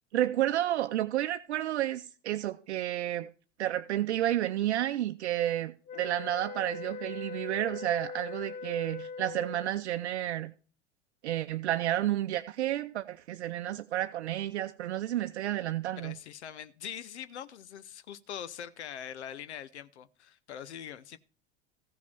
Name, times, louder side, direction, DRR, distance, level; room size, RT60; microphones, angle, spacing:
voice 1, 0.1-3.3 3.6-10.5 11.2-16.2, right 13 dB, 65° right, 0.7 m, -31 dB
sound 1, 5.9-9.8, left 5 dB, 20° left, 0.5 m, -41 dB
voice 2, 16.0-21.2, left 9 dB, 70° left, 0.7 m, -43 dB
15.0 x 5.9 x 5.7 m
figure-of-eight pair, 75°, 36 cm